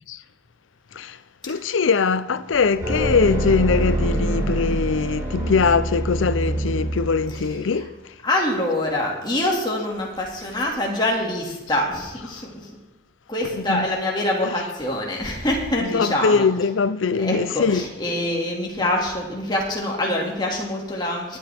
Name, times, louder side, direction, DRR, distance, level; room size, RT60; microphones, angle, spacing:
voice 1, 1.5-7.9 13.5-13.9 14.4-14.5 15.8-17.8, left 5 dB, 90° left, 0.5 m, -21 dB
sound 1, 2.8-7.7, right 1 dB, 15° right, 4.1 m, -25 dB
voice 2, 7.3-7.9 8.2-12.7 13.3-16.5 17.2-21.4, left 1 dB, 25° left, 2.1 m, -25 dB
23.0 x 8.5 x 3.5 m
head